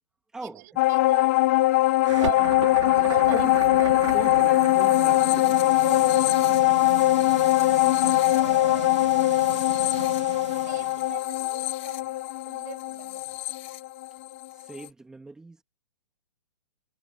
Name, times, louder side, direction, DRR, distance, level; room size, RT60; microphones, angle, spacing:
voice 1, 0.4-1.4 2.2-3.5 3.7-4.4 5.8-6.7 8.3-9.0 9.9-13.4, right 18 dB, 30° right, 6.7 m, -42 dB
sound 1, 0.8-14.4 14.8-14.9, left 18 dB, 25° left, 0.8 m, -22 dB
sound 2, 2.0-11.2, right 9 dB, 60° right, 2.1 m, -36 dB
voice 2, 4.1-5.6 14.7-15.6, right 3 dB, 5° right, 2.8 m, -39 dB
hypercardioid pair, 175°, 17 cm